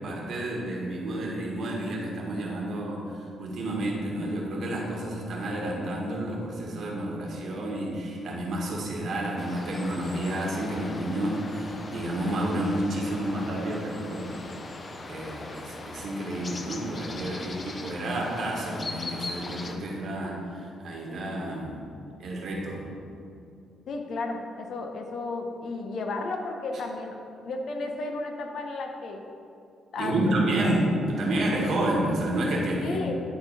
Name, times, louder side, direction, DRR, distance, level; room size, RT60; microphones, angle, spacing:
voice 1, 0.0-14.4 14.7-21.8 22.2-22.8 30.0-33.0, right 1 dB, 65° right, -2 dB, 1.6 m, -30 dB
sound 1, 9.4-19.8, left 2 dB, 35° left, 0.6 m, -40 dB
voice 2, 23.9-29.2 29.9-30.7 32.8-33.2, left 3 dB, 65° left, 4 dB, 0.8 m, -33 dB
10.5 x 3.9 x 4.1 m, 2.5 s
cardioid pair, 90°, 0 cm